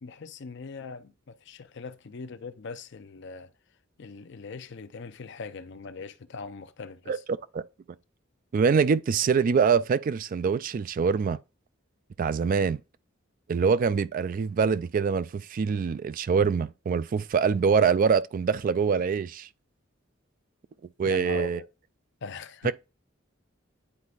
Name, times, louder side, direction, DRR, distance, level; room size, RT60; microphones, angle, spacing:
voice 1, 0.0-3.5 4.0-7.2 21.0-21.7 22.2-22.7, left 4 dB, 60° left, 0.6 m, -41 dB
voice 2, 8.5-11.4 12.2-12.8 13.5-19.5 21.0-21.6 22.6-22.7, right 6 dB, 45° right, 0.3 m, -24 dB
9.8 x 4.3 x 2.4 m
head